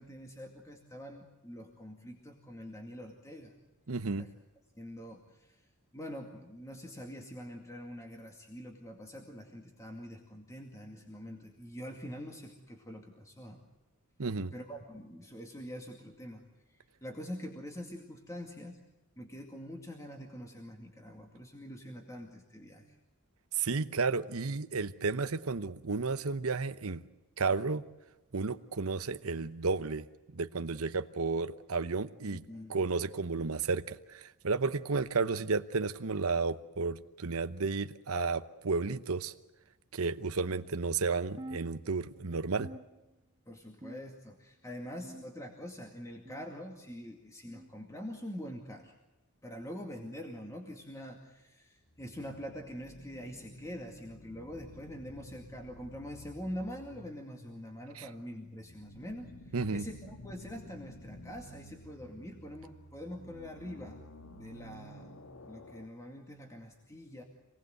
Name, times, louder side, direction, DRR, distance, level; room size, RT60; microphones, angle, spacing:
voice 1, 0.0-3.5 4.1-4.3 4.8-5.6 5.9-13.6 14.5-16.4 16.7-18.8 19.2-23.0 32.3-32.9 43.5-48.9 49.4-67.2, equal, 15° left, 2 dB, 2.3 m, -45 dB
voice 2, 3.9-4.3 14.2-14.5 23.6-27.0 27.4-27.8 28.3-30.0 30.3-32.4 32.7-39.3 39.9-42.7 58.0-58.1 59.5-59.8, right 4 dB, 70° right, 11 dB, 0.9 m, -32 dB
sound 1, 41.4-42.2 42.6-43.4 43.8-44.4 45.0-45.6 46.3-46.6 47.5-47.7 48.7-48.9 49.9-50.1 51.1-51.3 52.4-52.5 53.6-53.8 54.8-54.9 56.0-56.1, right 1 dB, 20° right, 0.9 m, -50 dB
sound 2, 51.8-65.9, left 1 dB, 65° left, 1.6 m, -52 dB
27.0 x 19.0 x 7.9 m, 1.0 s
head